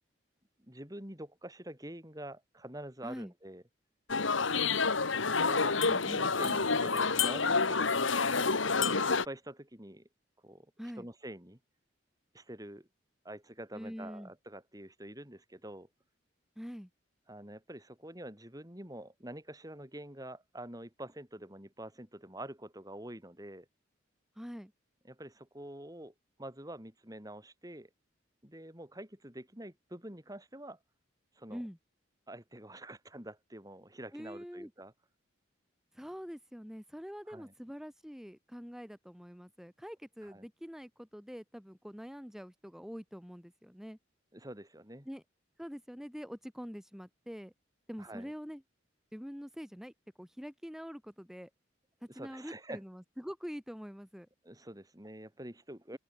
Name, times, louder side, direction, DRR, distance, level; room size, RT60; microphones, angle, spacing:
voice 1, 0.6-3.6 5.3-8.6 9.1-10.1 10.4-10.7 11.0-11.6 12.3-12.9 13.2-15.9 17.3-23.7 25.0-26.1 26.4-27.9 28.4-30.8 31.4-31.6 32.3-34.9 37.3-37.5 40.2-40.5 44.3-45.1 48.0-48.3 52.1-52.8 54.4-56.0, right 1 dB, 20° right, 4.1 m, -46 dB
sound 1, 4.1-9.2, left 4 dB, 80° left, 2.0 m, -28 dB
voice 2, 5.8-6.2 10.8-11.1 13.7-14.3 16.6-16.9 24.4-24.7 31.5-31.8 34.1-34.7 35.9-44.0 45.1-45.2 45.6-47.5 47.9-48.6 49.1-51.5 52.1-54.3, equal, ahead, 4.1 m, -45 dB
open air
head